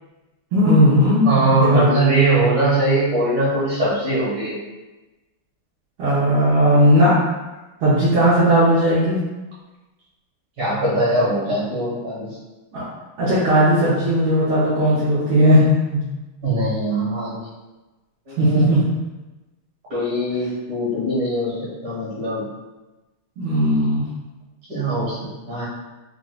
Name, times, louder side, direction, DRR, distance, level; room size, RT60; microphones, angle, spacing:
voice 1, 0.5-1.9 6.0-7.1 7.8-9.2 12.7-12.9 13.2-15.7 15.9-16.0 18.4-18.8 23.4-24.1, equal, 80° right, -11 dB, 1.7 m, -16 dB
voice 2, 1.3-4.6 10.6-12.3 16.4-17.4 18.3-18.7 19.9-22.5 24.7-25.7, right 1 dB, 65° right, -8 dB, 2.2 m, -21 dB
4.5 x 2.5 x 2.3 m, 1.1 s
omnidirectional pair, 2.4 m